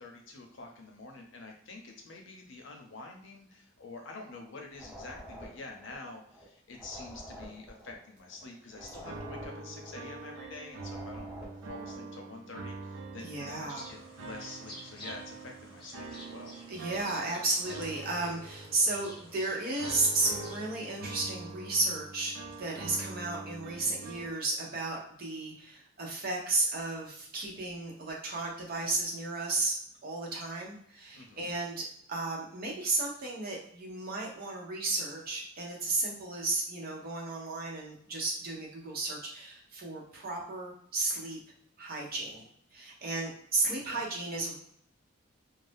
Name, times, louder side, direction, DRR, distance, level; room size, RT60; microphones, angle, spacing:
voice 1, 0.0-11.3 11.6-16.6 31.1-31.5 43.9-44.0, left 3 dB, 60° left, 2 dB, 0.6 m, -47 dB
sound 1, 4.7-6.4 6.7-10.4 10.7-12.1, equal, 5° right, 0.7 m, -49 dB
sound 2, 8.7-24.3, right 3 dB, 70° right, 0.4 m, -45 dB
voice 2, 13.2-13.9 16.7-29.8 30.0-41.4 41.8-42.4 42.7-44.6, right 3 dB, 45° right, -2 dB, 0.8 m, -33 dB
sound 3, 13.7-20.6, left 1 dB, 25° left, 0.8 m, -50 dB
2.6 x 2.0 x 3.4 m, 0.66 s
head